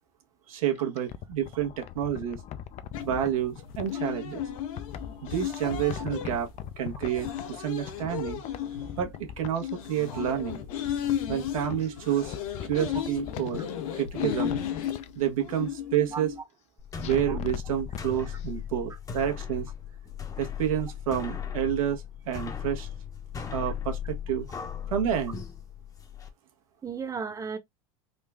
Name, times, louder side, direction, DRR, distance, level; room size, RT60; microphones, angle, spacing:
voice 1, 0.5-2.4 3.0-4.4 5.2-6.5 6.8-8.4 9.0-10.6 11.3-12.4 12.7-13.6 14.0-14.6 15.1-16.3 17.0-19.7 20.4-22.9 23.5-24.5 24.9-25.4, right 10 dB, 85° right, 1.2 m, -29 dB
sound 1, 0.8-3.9 4.4-7.6 7.8-9.7 10.0-11.9 12.2-13.7 14.1-15.1 17.0-18.0 18.4-18.5, left 10 dB, 40° left, 0.5 m, -41 dB
sound 2, 2.9-16.4, left 9 dB, 80° left, 1.1 m, -35 dB
sound 3, 16.8-26.3, left 8 dB, 20° left, 0.8 m, -37 dB
voice 2, 26.8-27.6, right 5 dB, 20° right, 0.9 m, -35 dB
3.8 x 2.4 x 3.4 m
supercardioid pair, 115°, 17 cm